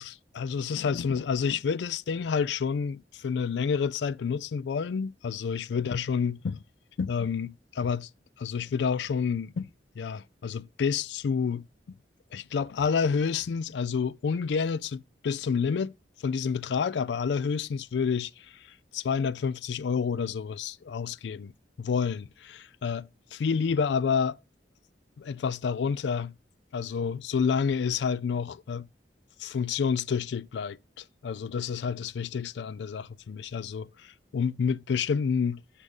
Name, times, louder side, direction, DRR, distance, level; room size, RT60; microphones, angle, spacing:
voice 1, 0.0-6.6 7.0-8.1 8.4-9.7 10.0-12.0 12.3-15.9 16.2-21.5 21.8-24.4 25.2-26.3 26.7-28.9 29.4-35.6, left 6 dB, 80° left, 0.4 m, -29 dB
7.8 x 6.6 x 3.6 m
head